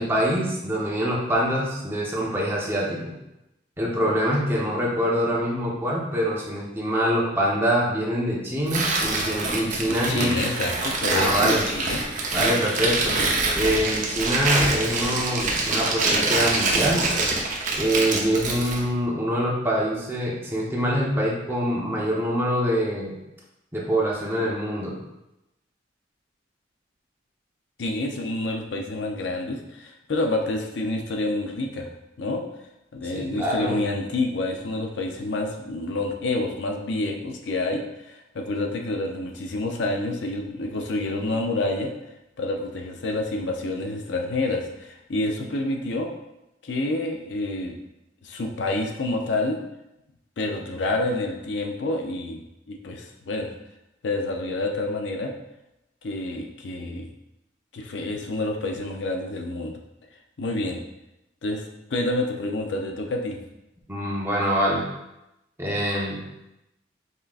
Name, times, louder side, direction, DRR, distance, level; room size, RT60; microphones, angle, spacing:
voice 1, 0.0-3.1 3.8-10.4 11.1-11.6 12.3-13.2 13.5-17.0 17.8-23.1 23.7-25.0 33.1-33.8 63.9-64.8 65.6-66.2, equal, 15° right, -4 dB, 0.8 m, -24 dB
Tearing, 8.7-18.8, right 3 dB, 45° right, 0.7 m, -25 dB
voice 2, 9.9-12.0 27.8-31.9 32.2-32.4 32.9-41.9 42.4-46.1 46.6-47.8 48.2-49.6 50.4-53.5 54.0-55.3 56.0-57.1 57.7-59.8 60.4-60.8 61.4-63.4, left 2 dB, 70° left, 2 dB, 0.5 m, -28 dB
5.5 x 3.7 x 2.4 m, 0.91 s
head